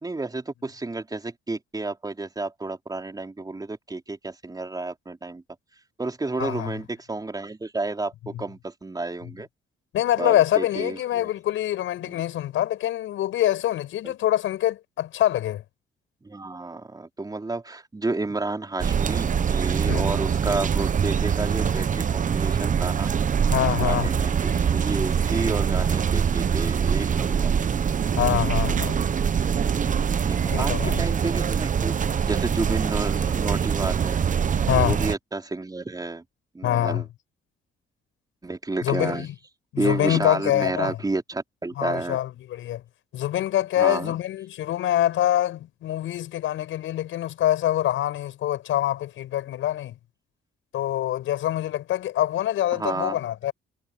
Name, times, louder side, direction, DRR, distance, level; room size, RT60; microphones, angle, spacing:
voice 1, 0.0-5.4 6.0-9.5 10.2-11.3 12.0-12.2 14.0-14.1 16.2-23.1 23.8-27.5 30.2-31.9 32.2-34.2 34.7-36.2 36.5-37.1 38.4-39.3 39.8-42.2 43.8-44.1 52.7-53.2, right 3 dB, 20° right, 4.1 m, -31 dB
voice 2, 6.4-6.7 8.3-8.4 9.9-15.6 19.9-20.1 23.5-24.1 28.2-29.0 30.5-31.0 34.7-35.0 36.6-37.0 38.8-39.3 39.7-41.0 41.8-42.8 43.1-49.9 50.7-53.5, left 13 dB, 80° left, 6.5 m, -25 dB
sound 1, 18.8-35.1, right 7 dB, 40° right, 1.0 m, -24 dB
cardioid pair, 90°, 20 cm